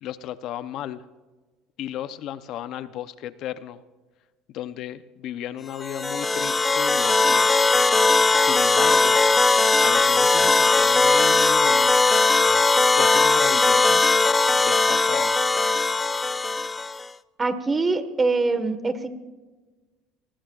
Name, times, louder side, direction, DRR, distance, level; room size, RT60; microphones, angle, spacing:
voice 1, 0.0-1.0 1.8-3.8 4.5-7.5 8.4-9.2 9.8-11.9 13.0-14.1 14.6-15.3, left 11 dB, 60° left, 12 dB, 0.7 m, -34 dB
sound 1, 5.8-17.1, left 3 dB, 15° left, 0.4 m, -19 dB
voice 2, 17.4-19.1, right 3 dB, 20° right, 10 dB, 1.4 m, -23 dB
25.5 x 20.0 x 2.4 m, 1.2 s
cardioid pair, 120°, 0 cm